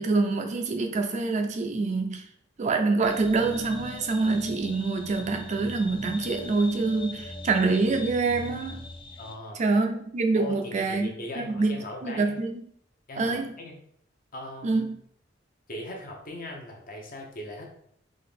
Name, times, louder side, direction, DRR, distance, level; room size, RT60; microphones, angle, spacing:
voice 1, 0.0-2.2 2.6-8.8 9.5-11.1 11.4-11.8 12.0-12.6 13.2-13.5 14.6-15.0, right 3 dB, 40° right, 5 dB, 0.4 m, -26 dB
sound 1, 3.0-9.3, left 2 dB, 25° left, 0.4 m, -41 dB
voice 2, 9.2-9.6 10.3-12.4 13.1-13.8 14.3-14.8 15.7-17.7, left 1 dB, 50° left, 1 dB, 0.8 m, -39 dB
3.6 x 2.5 x 3.6 m, 0.67 s
head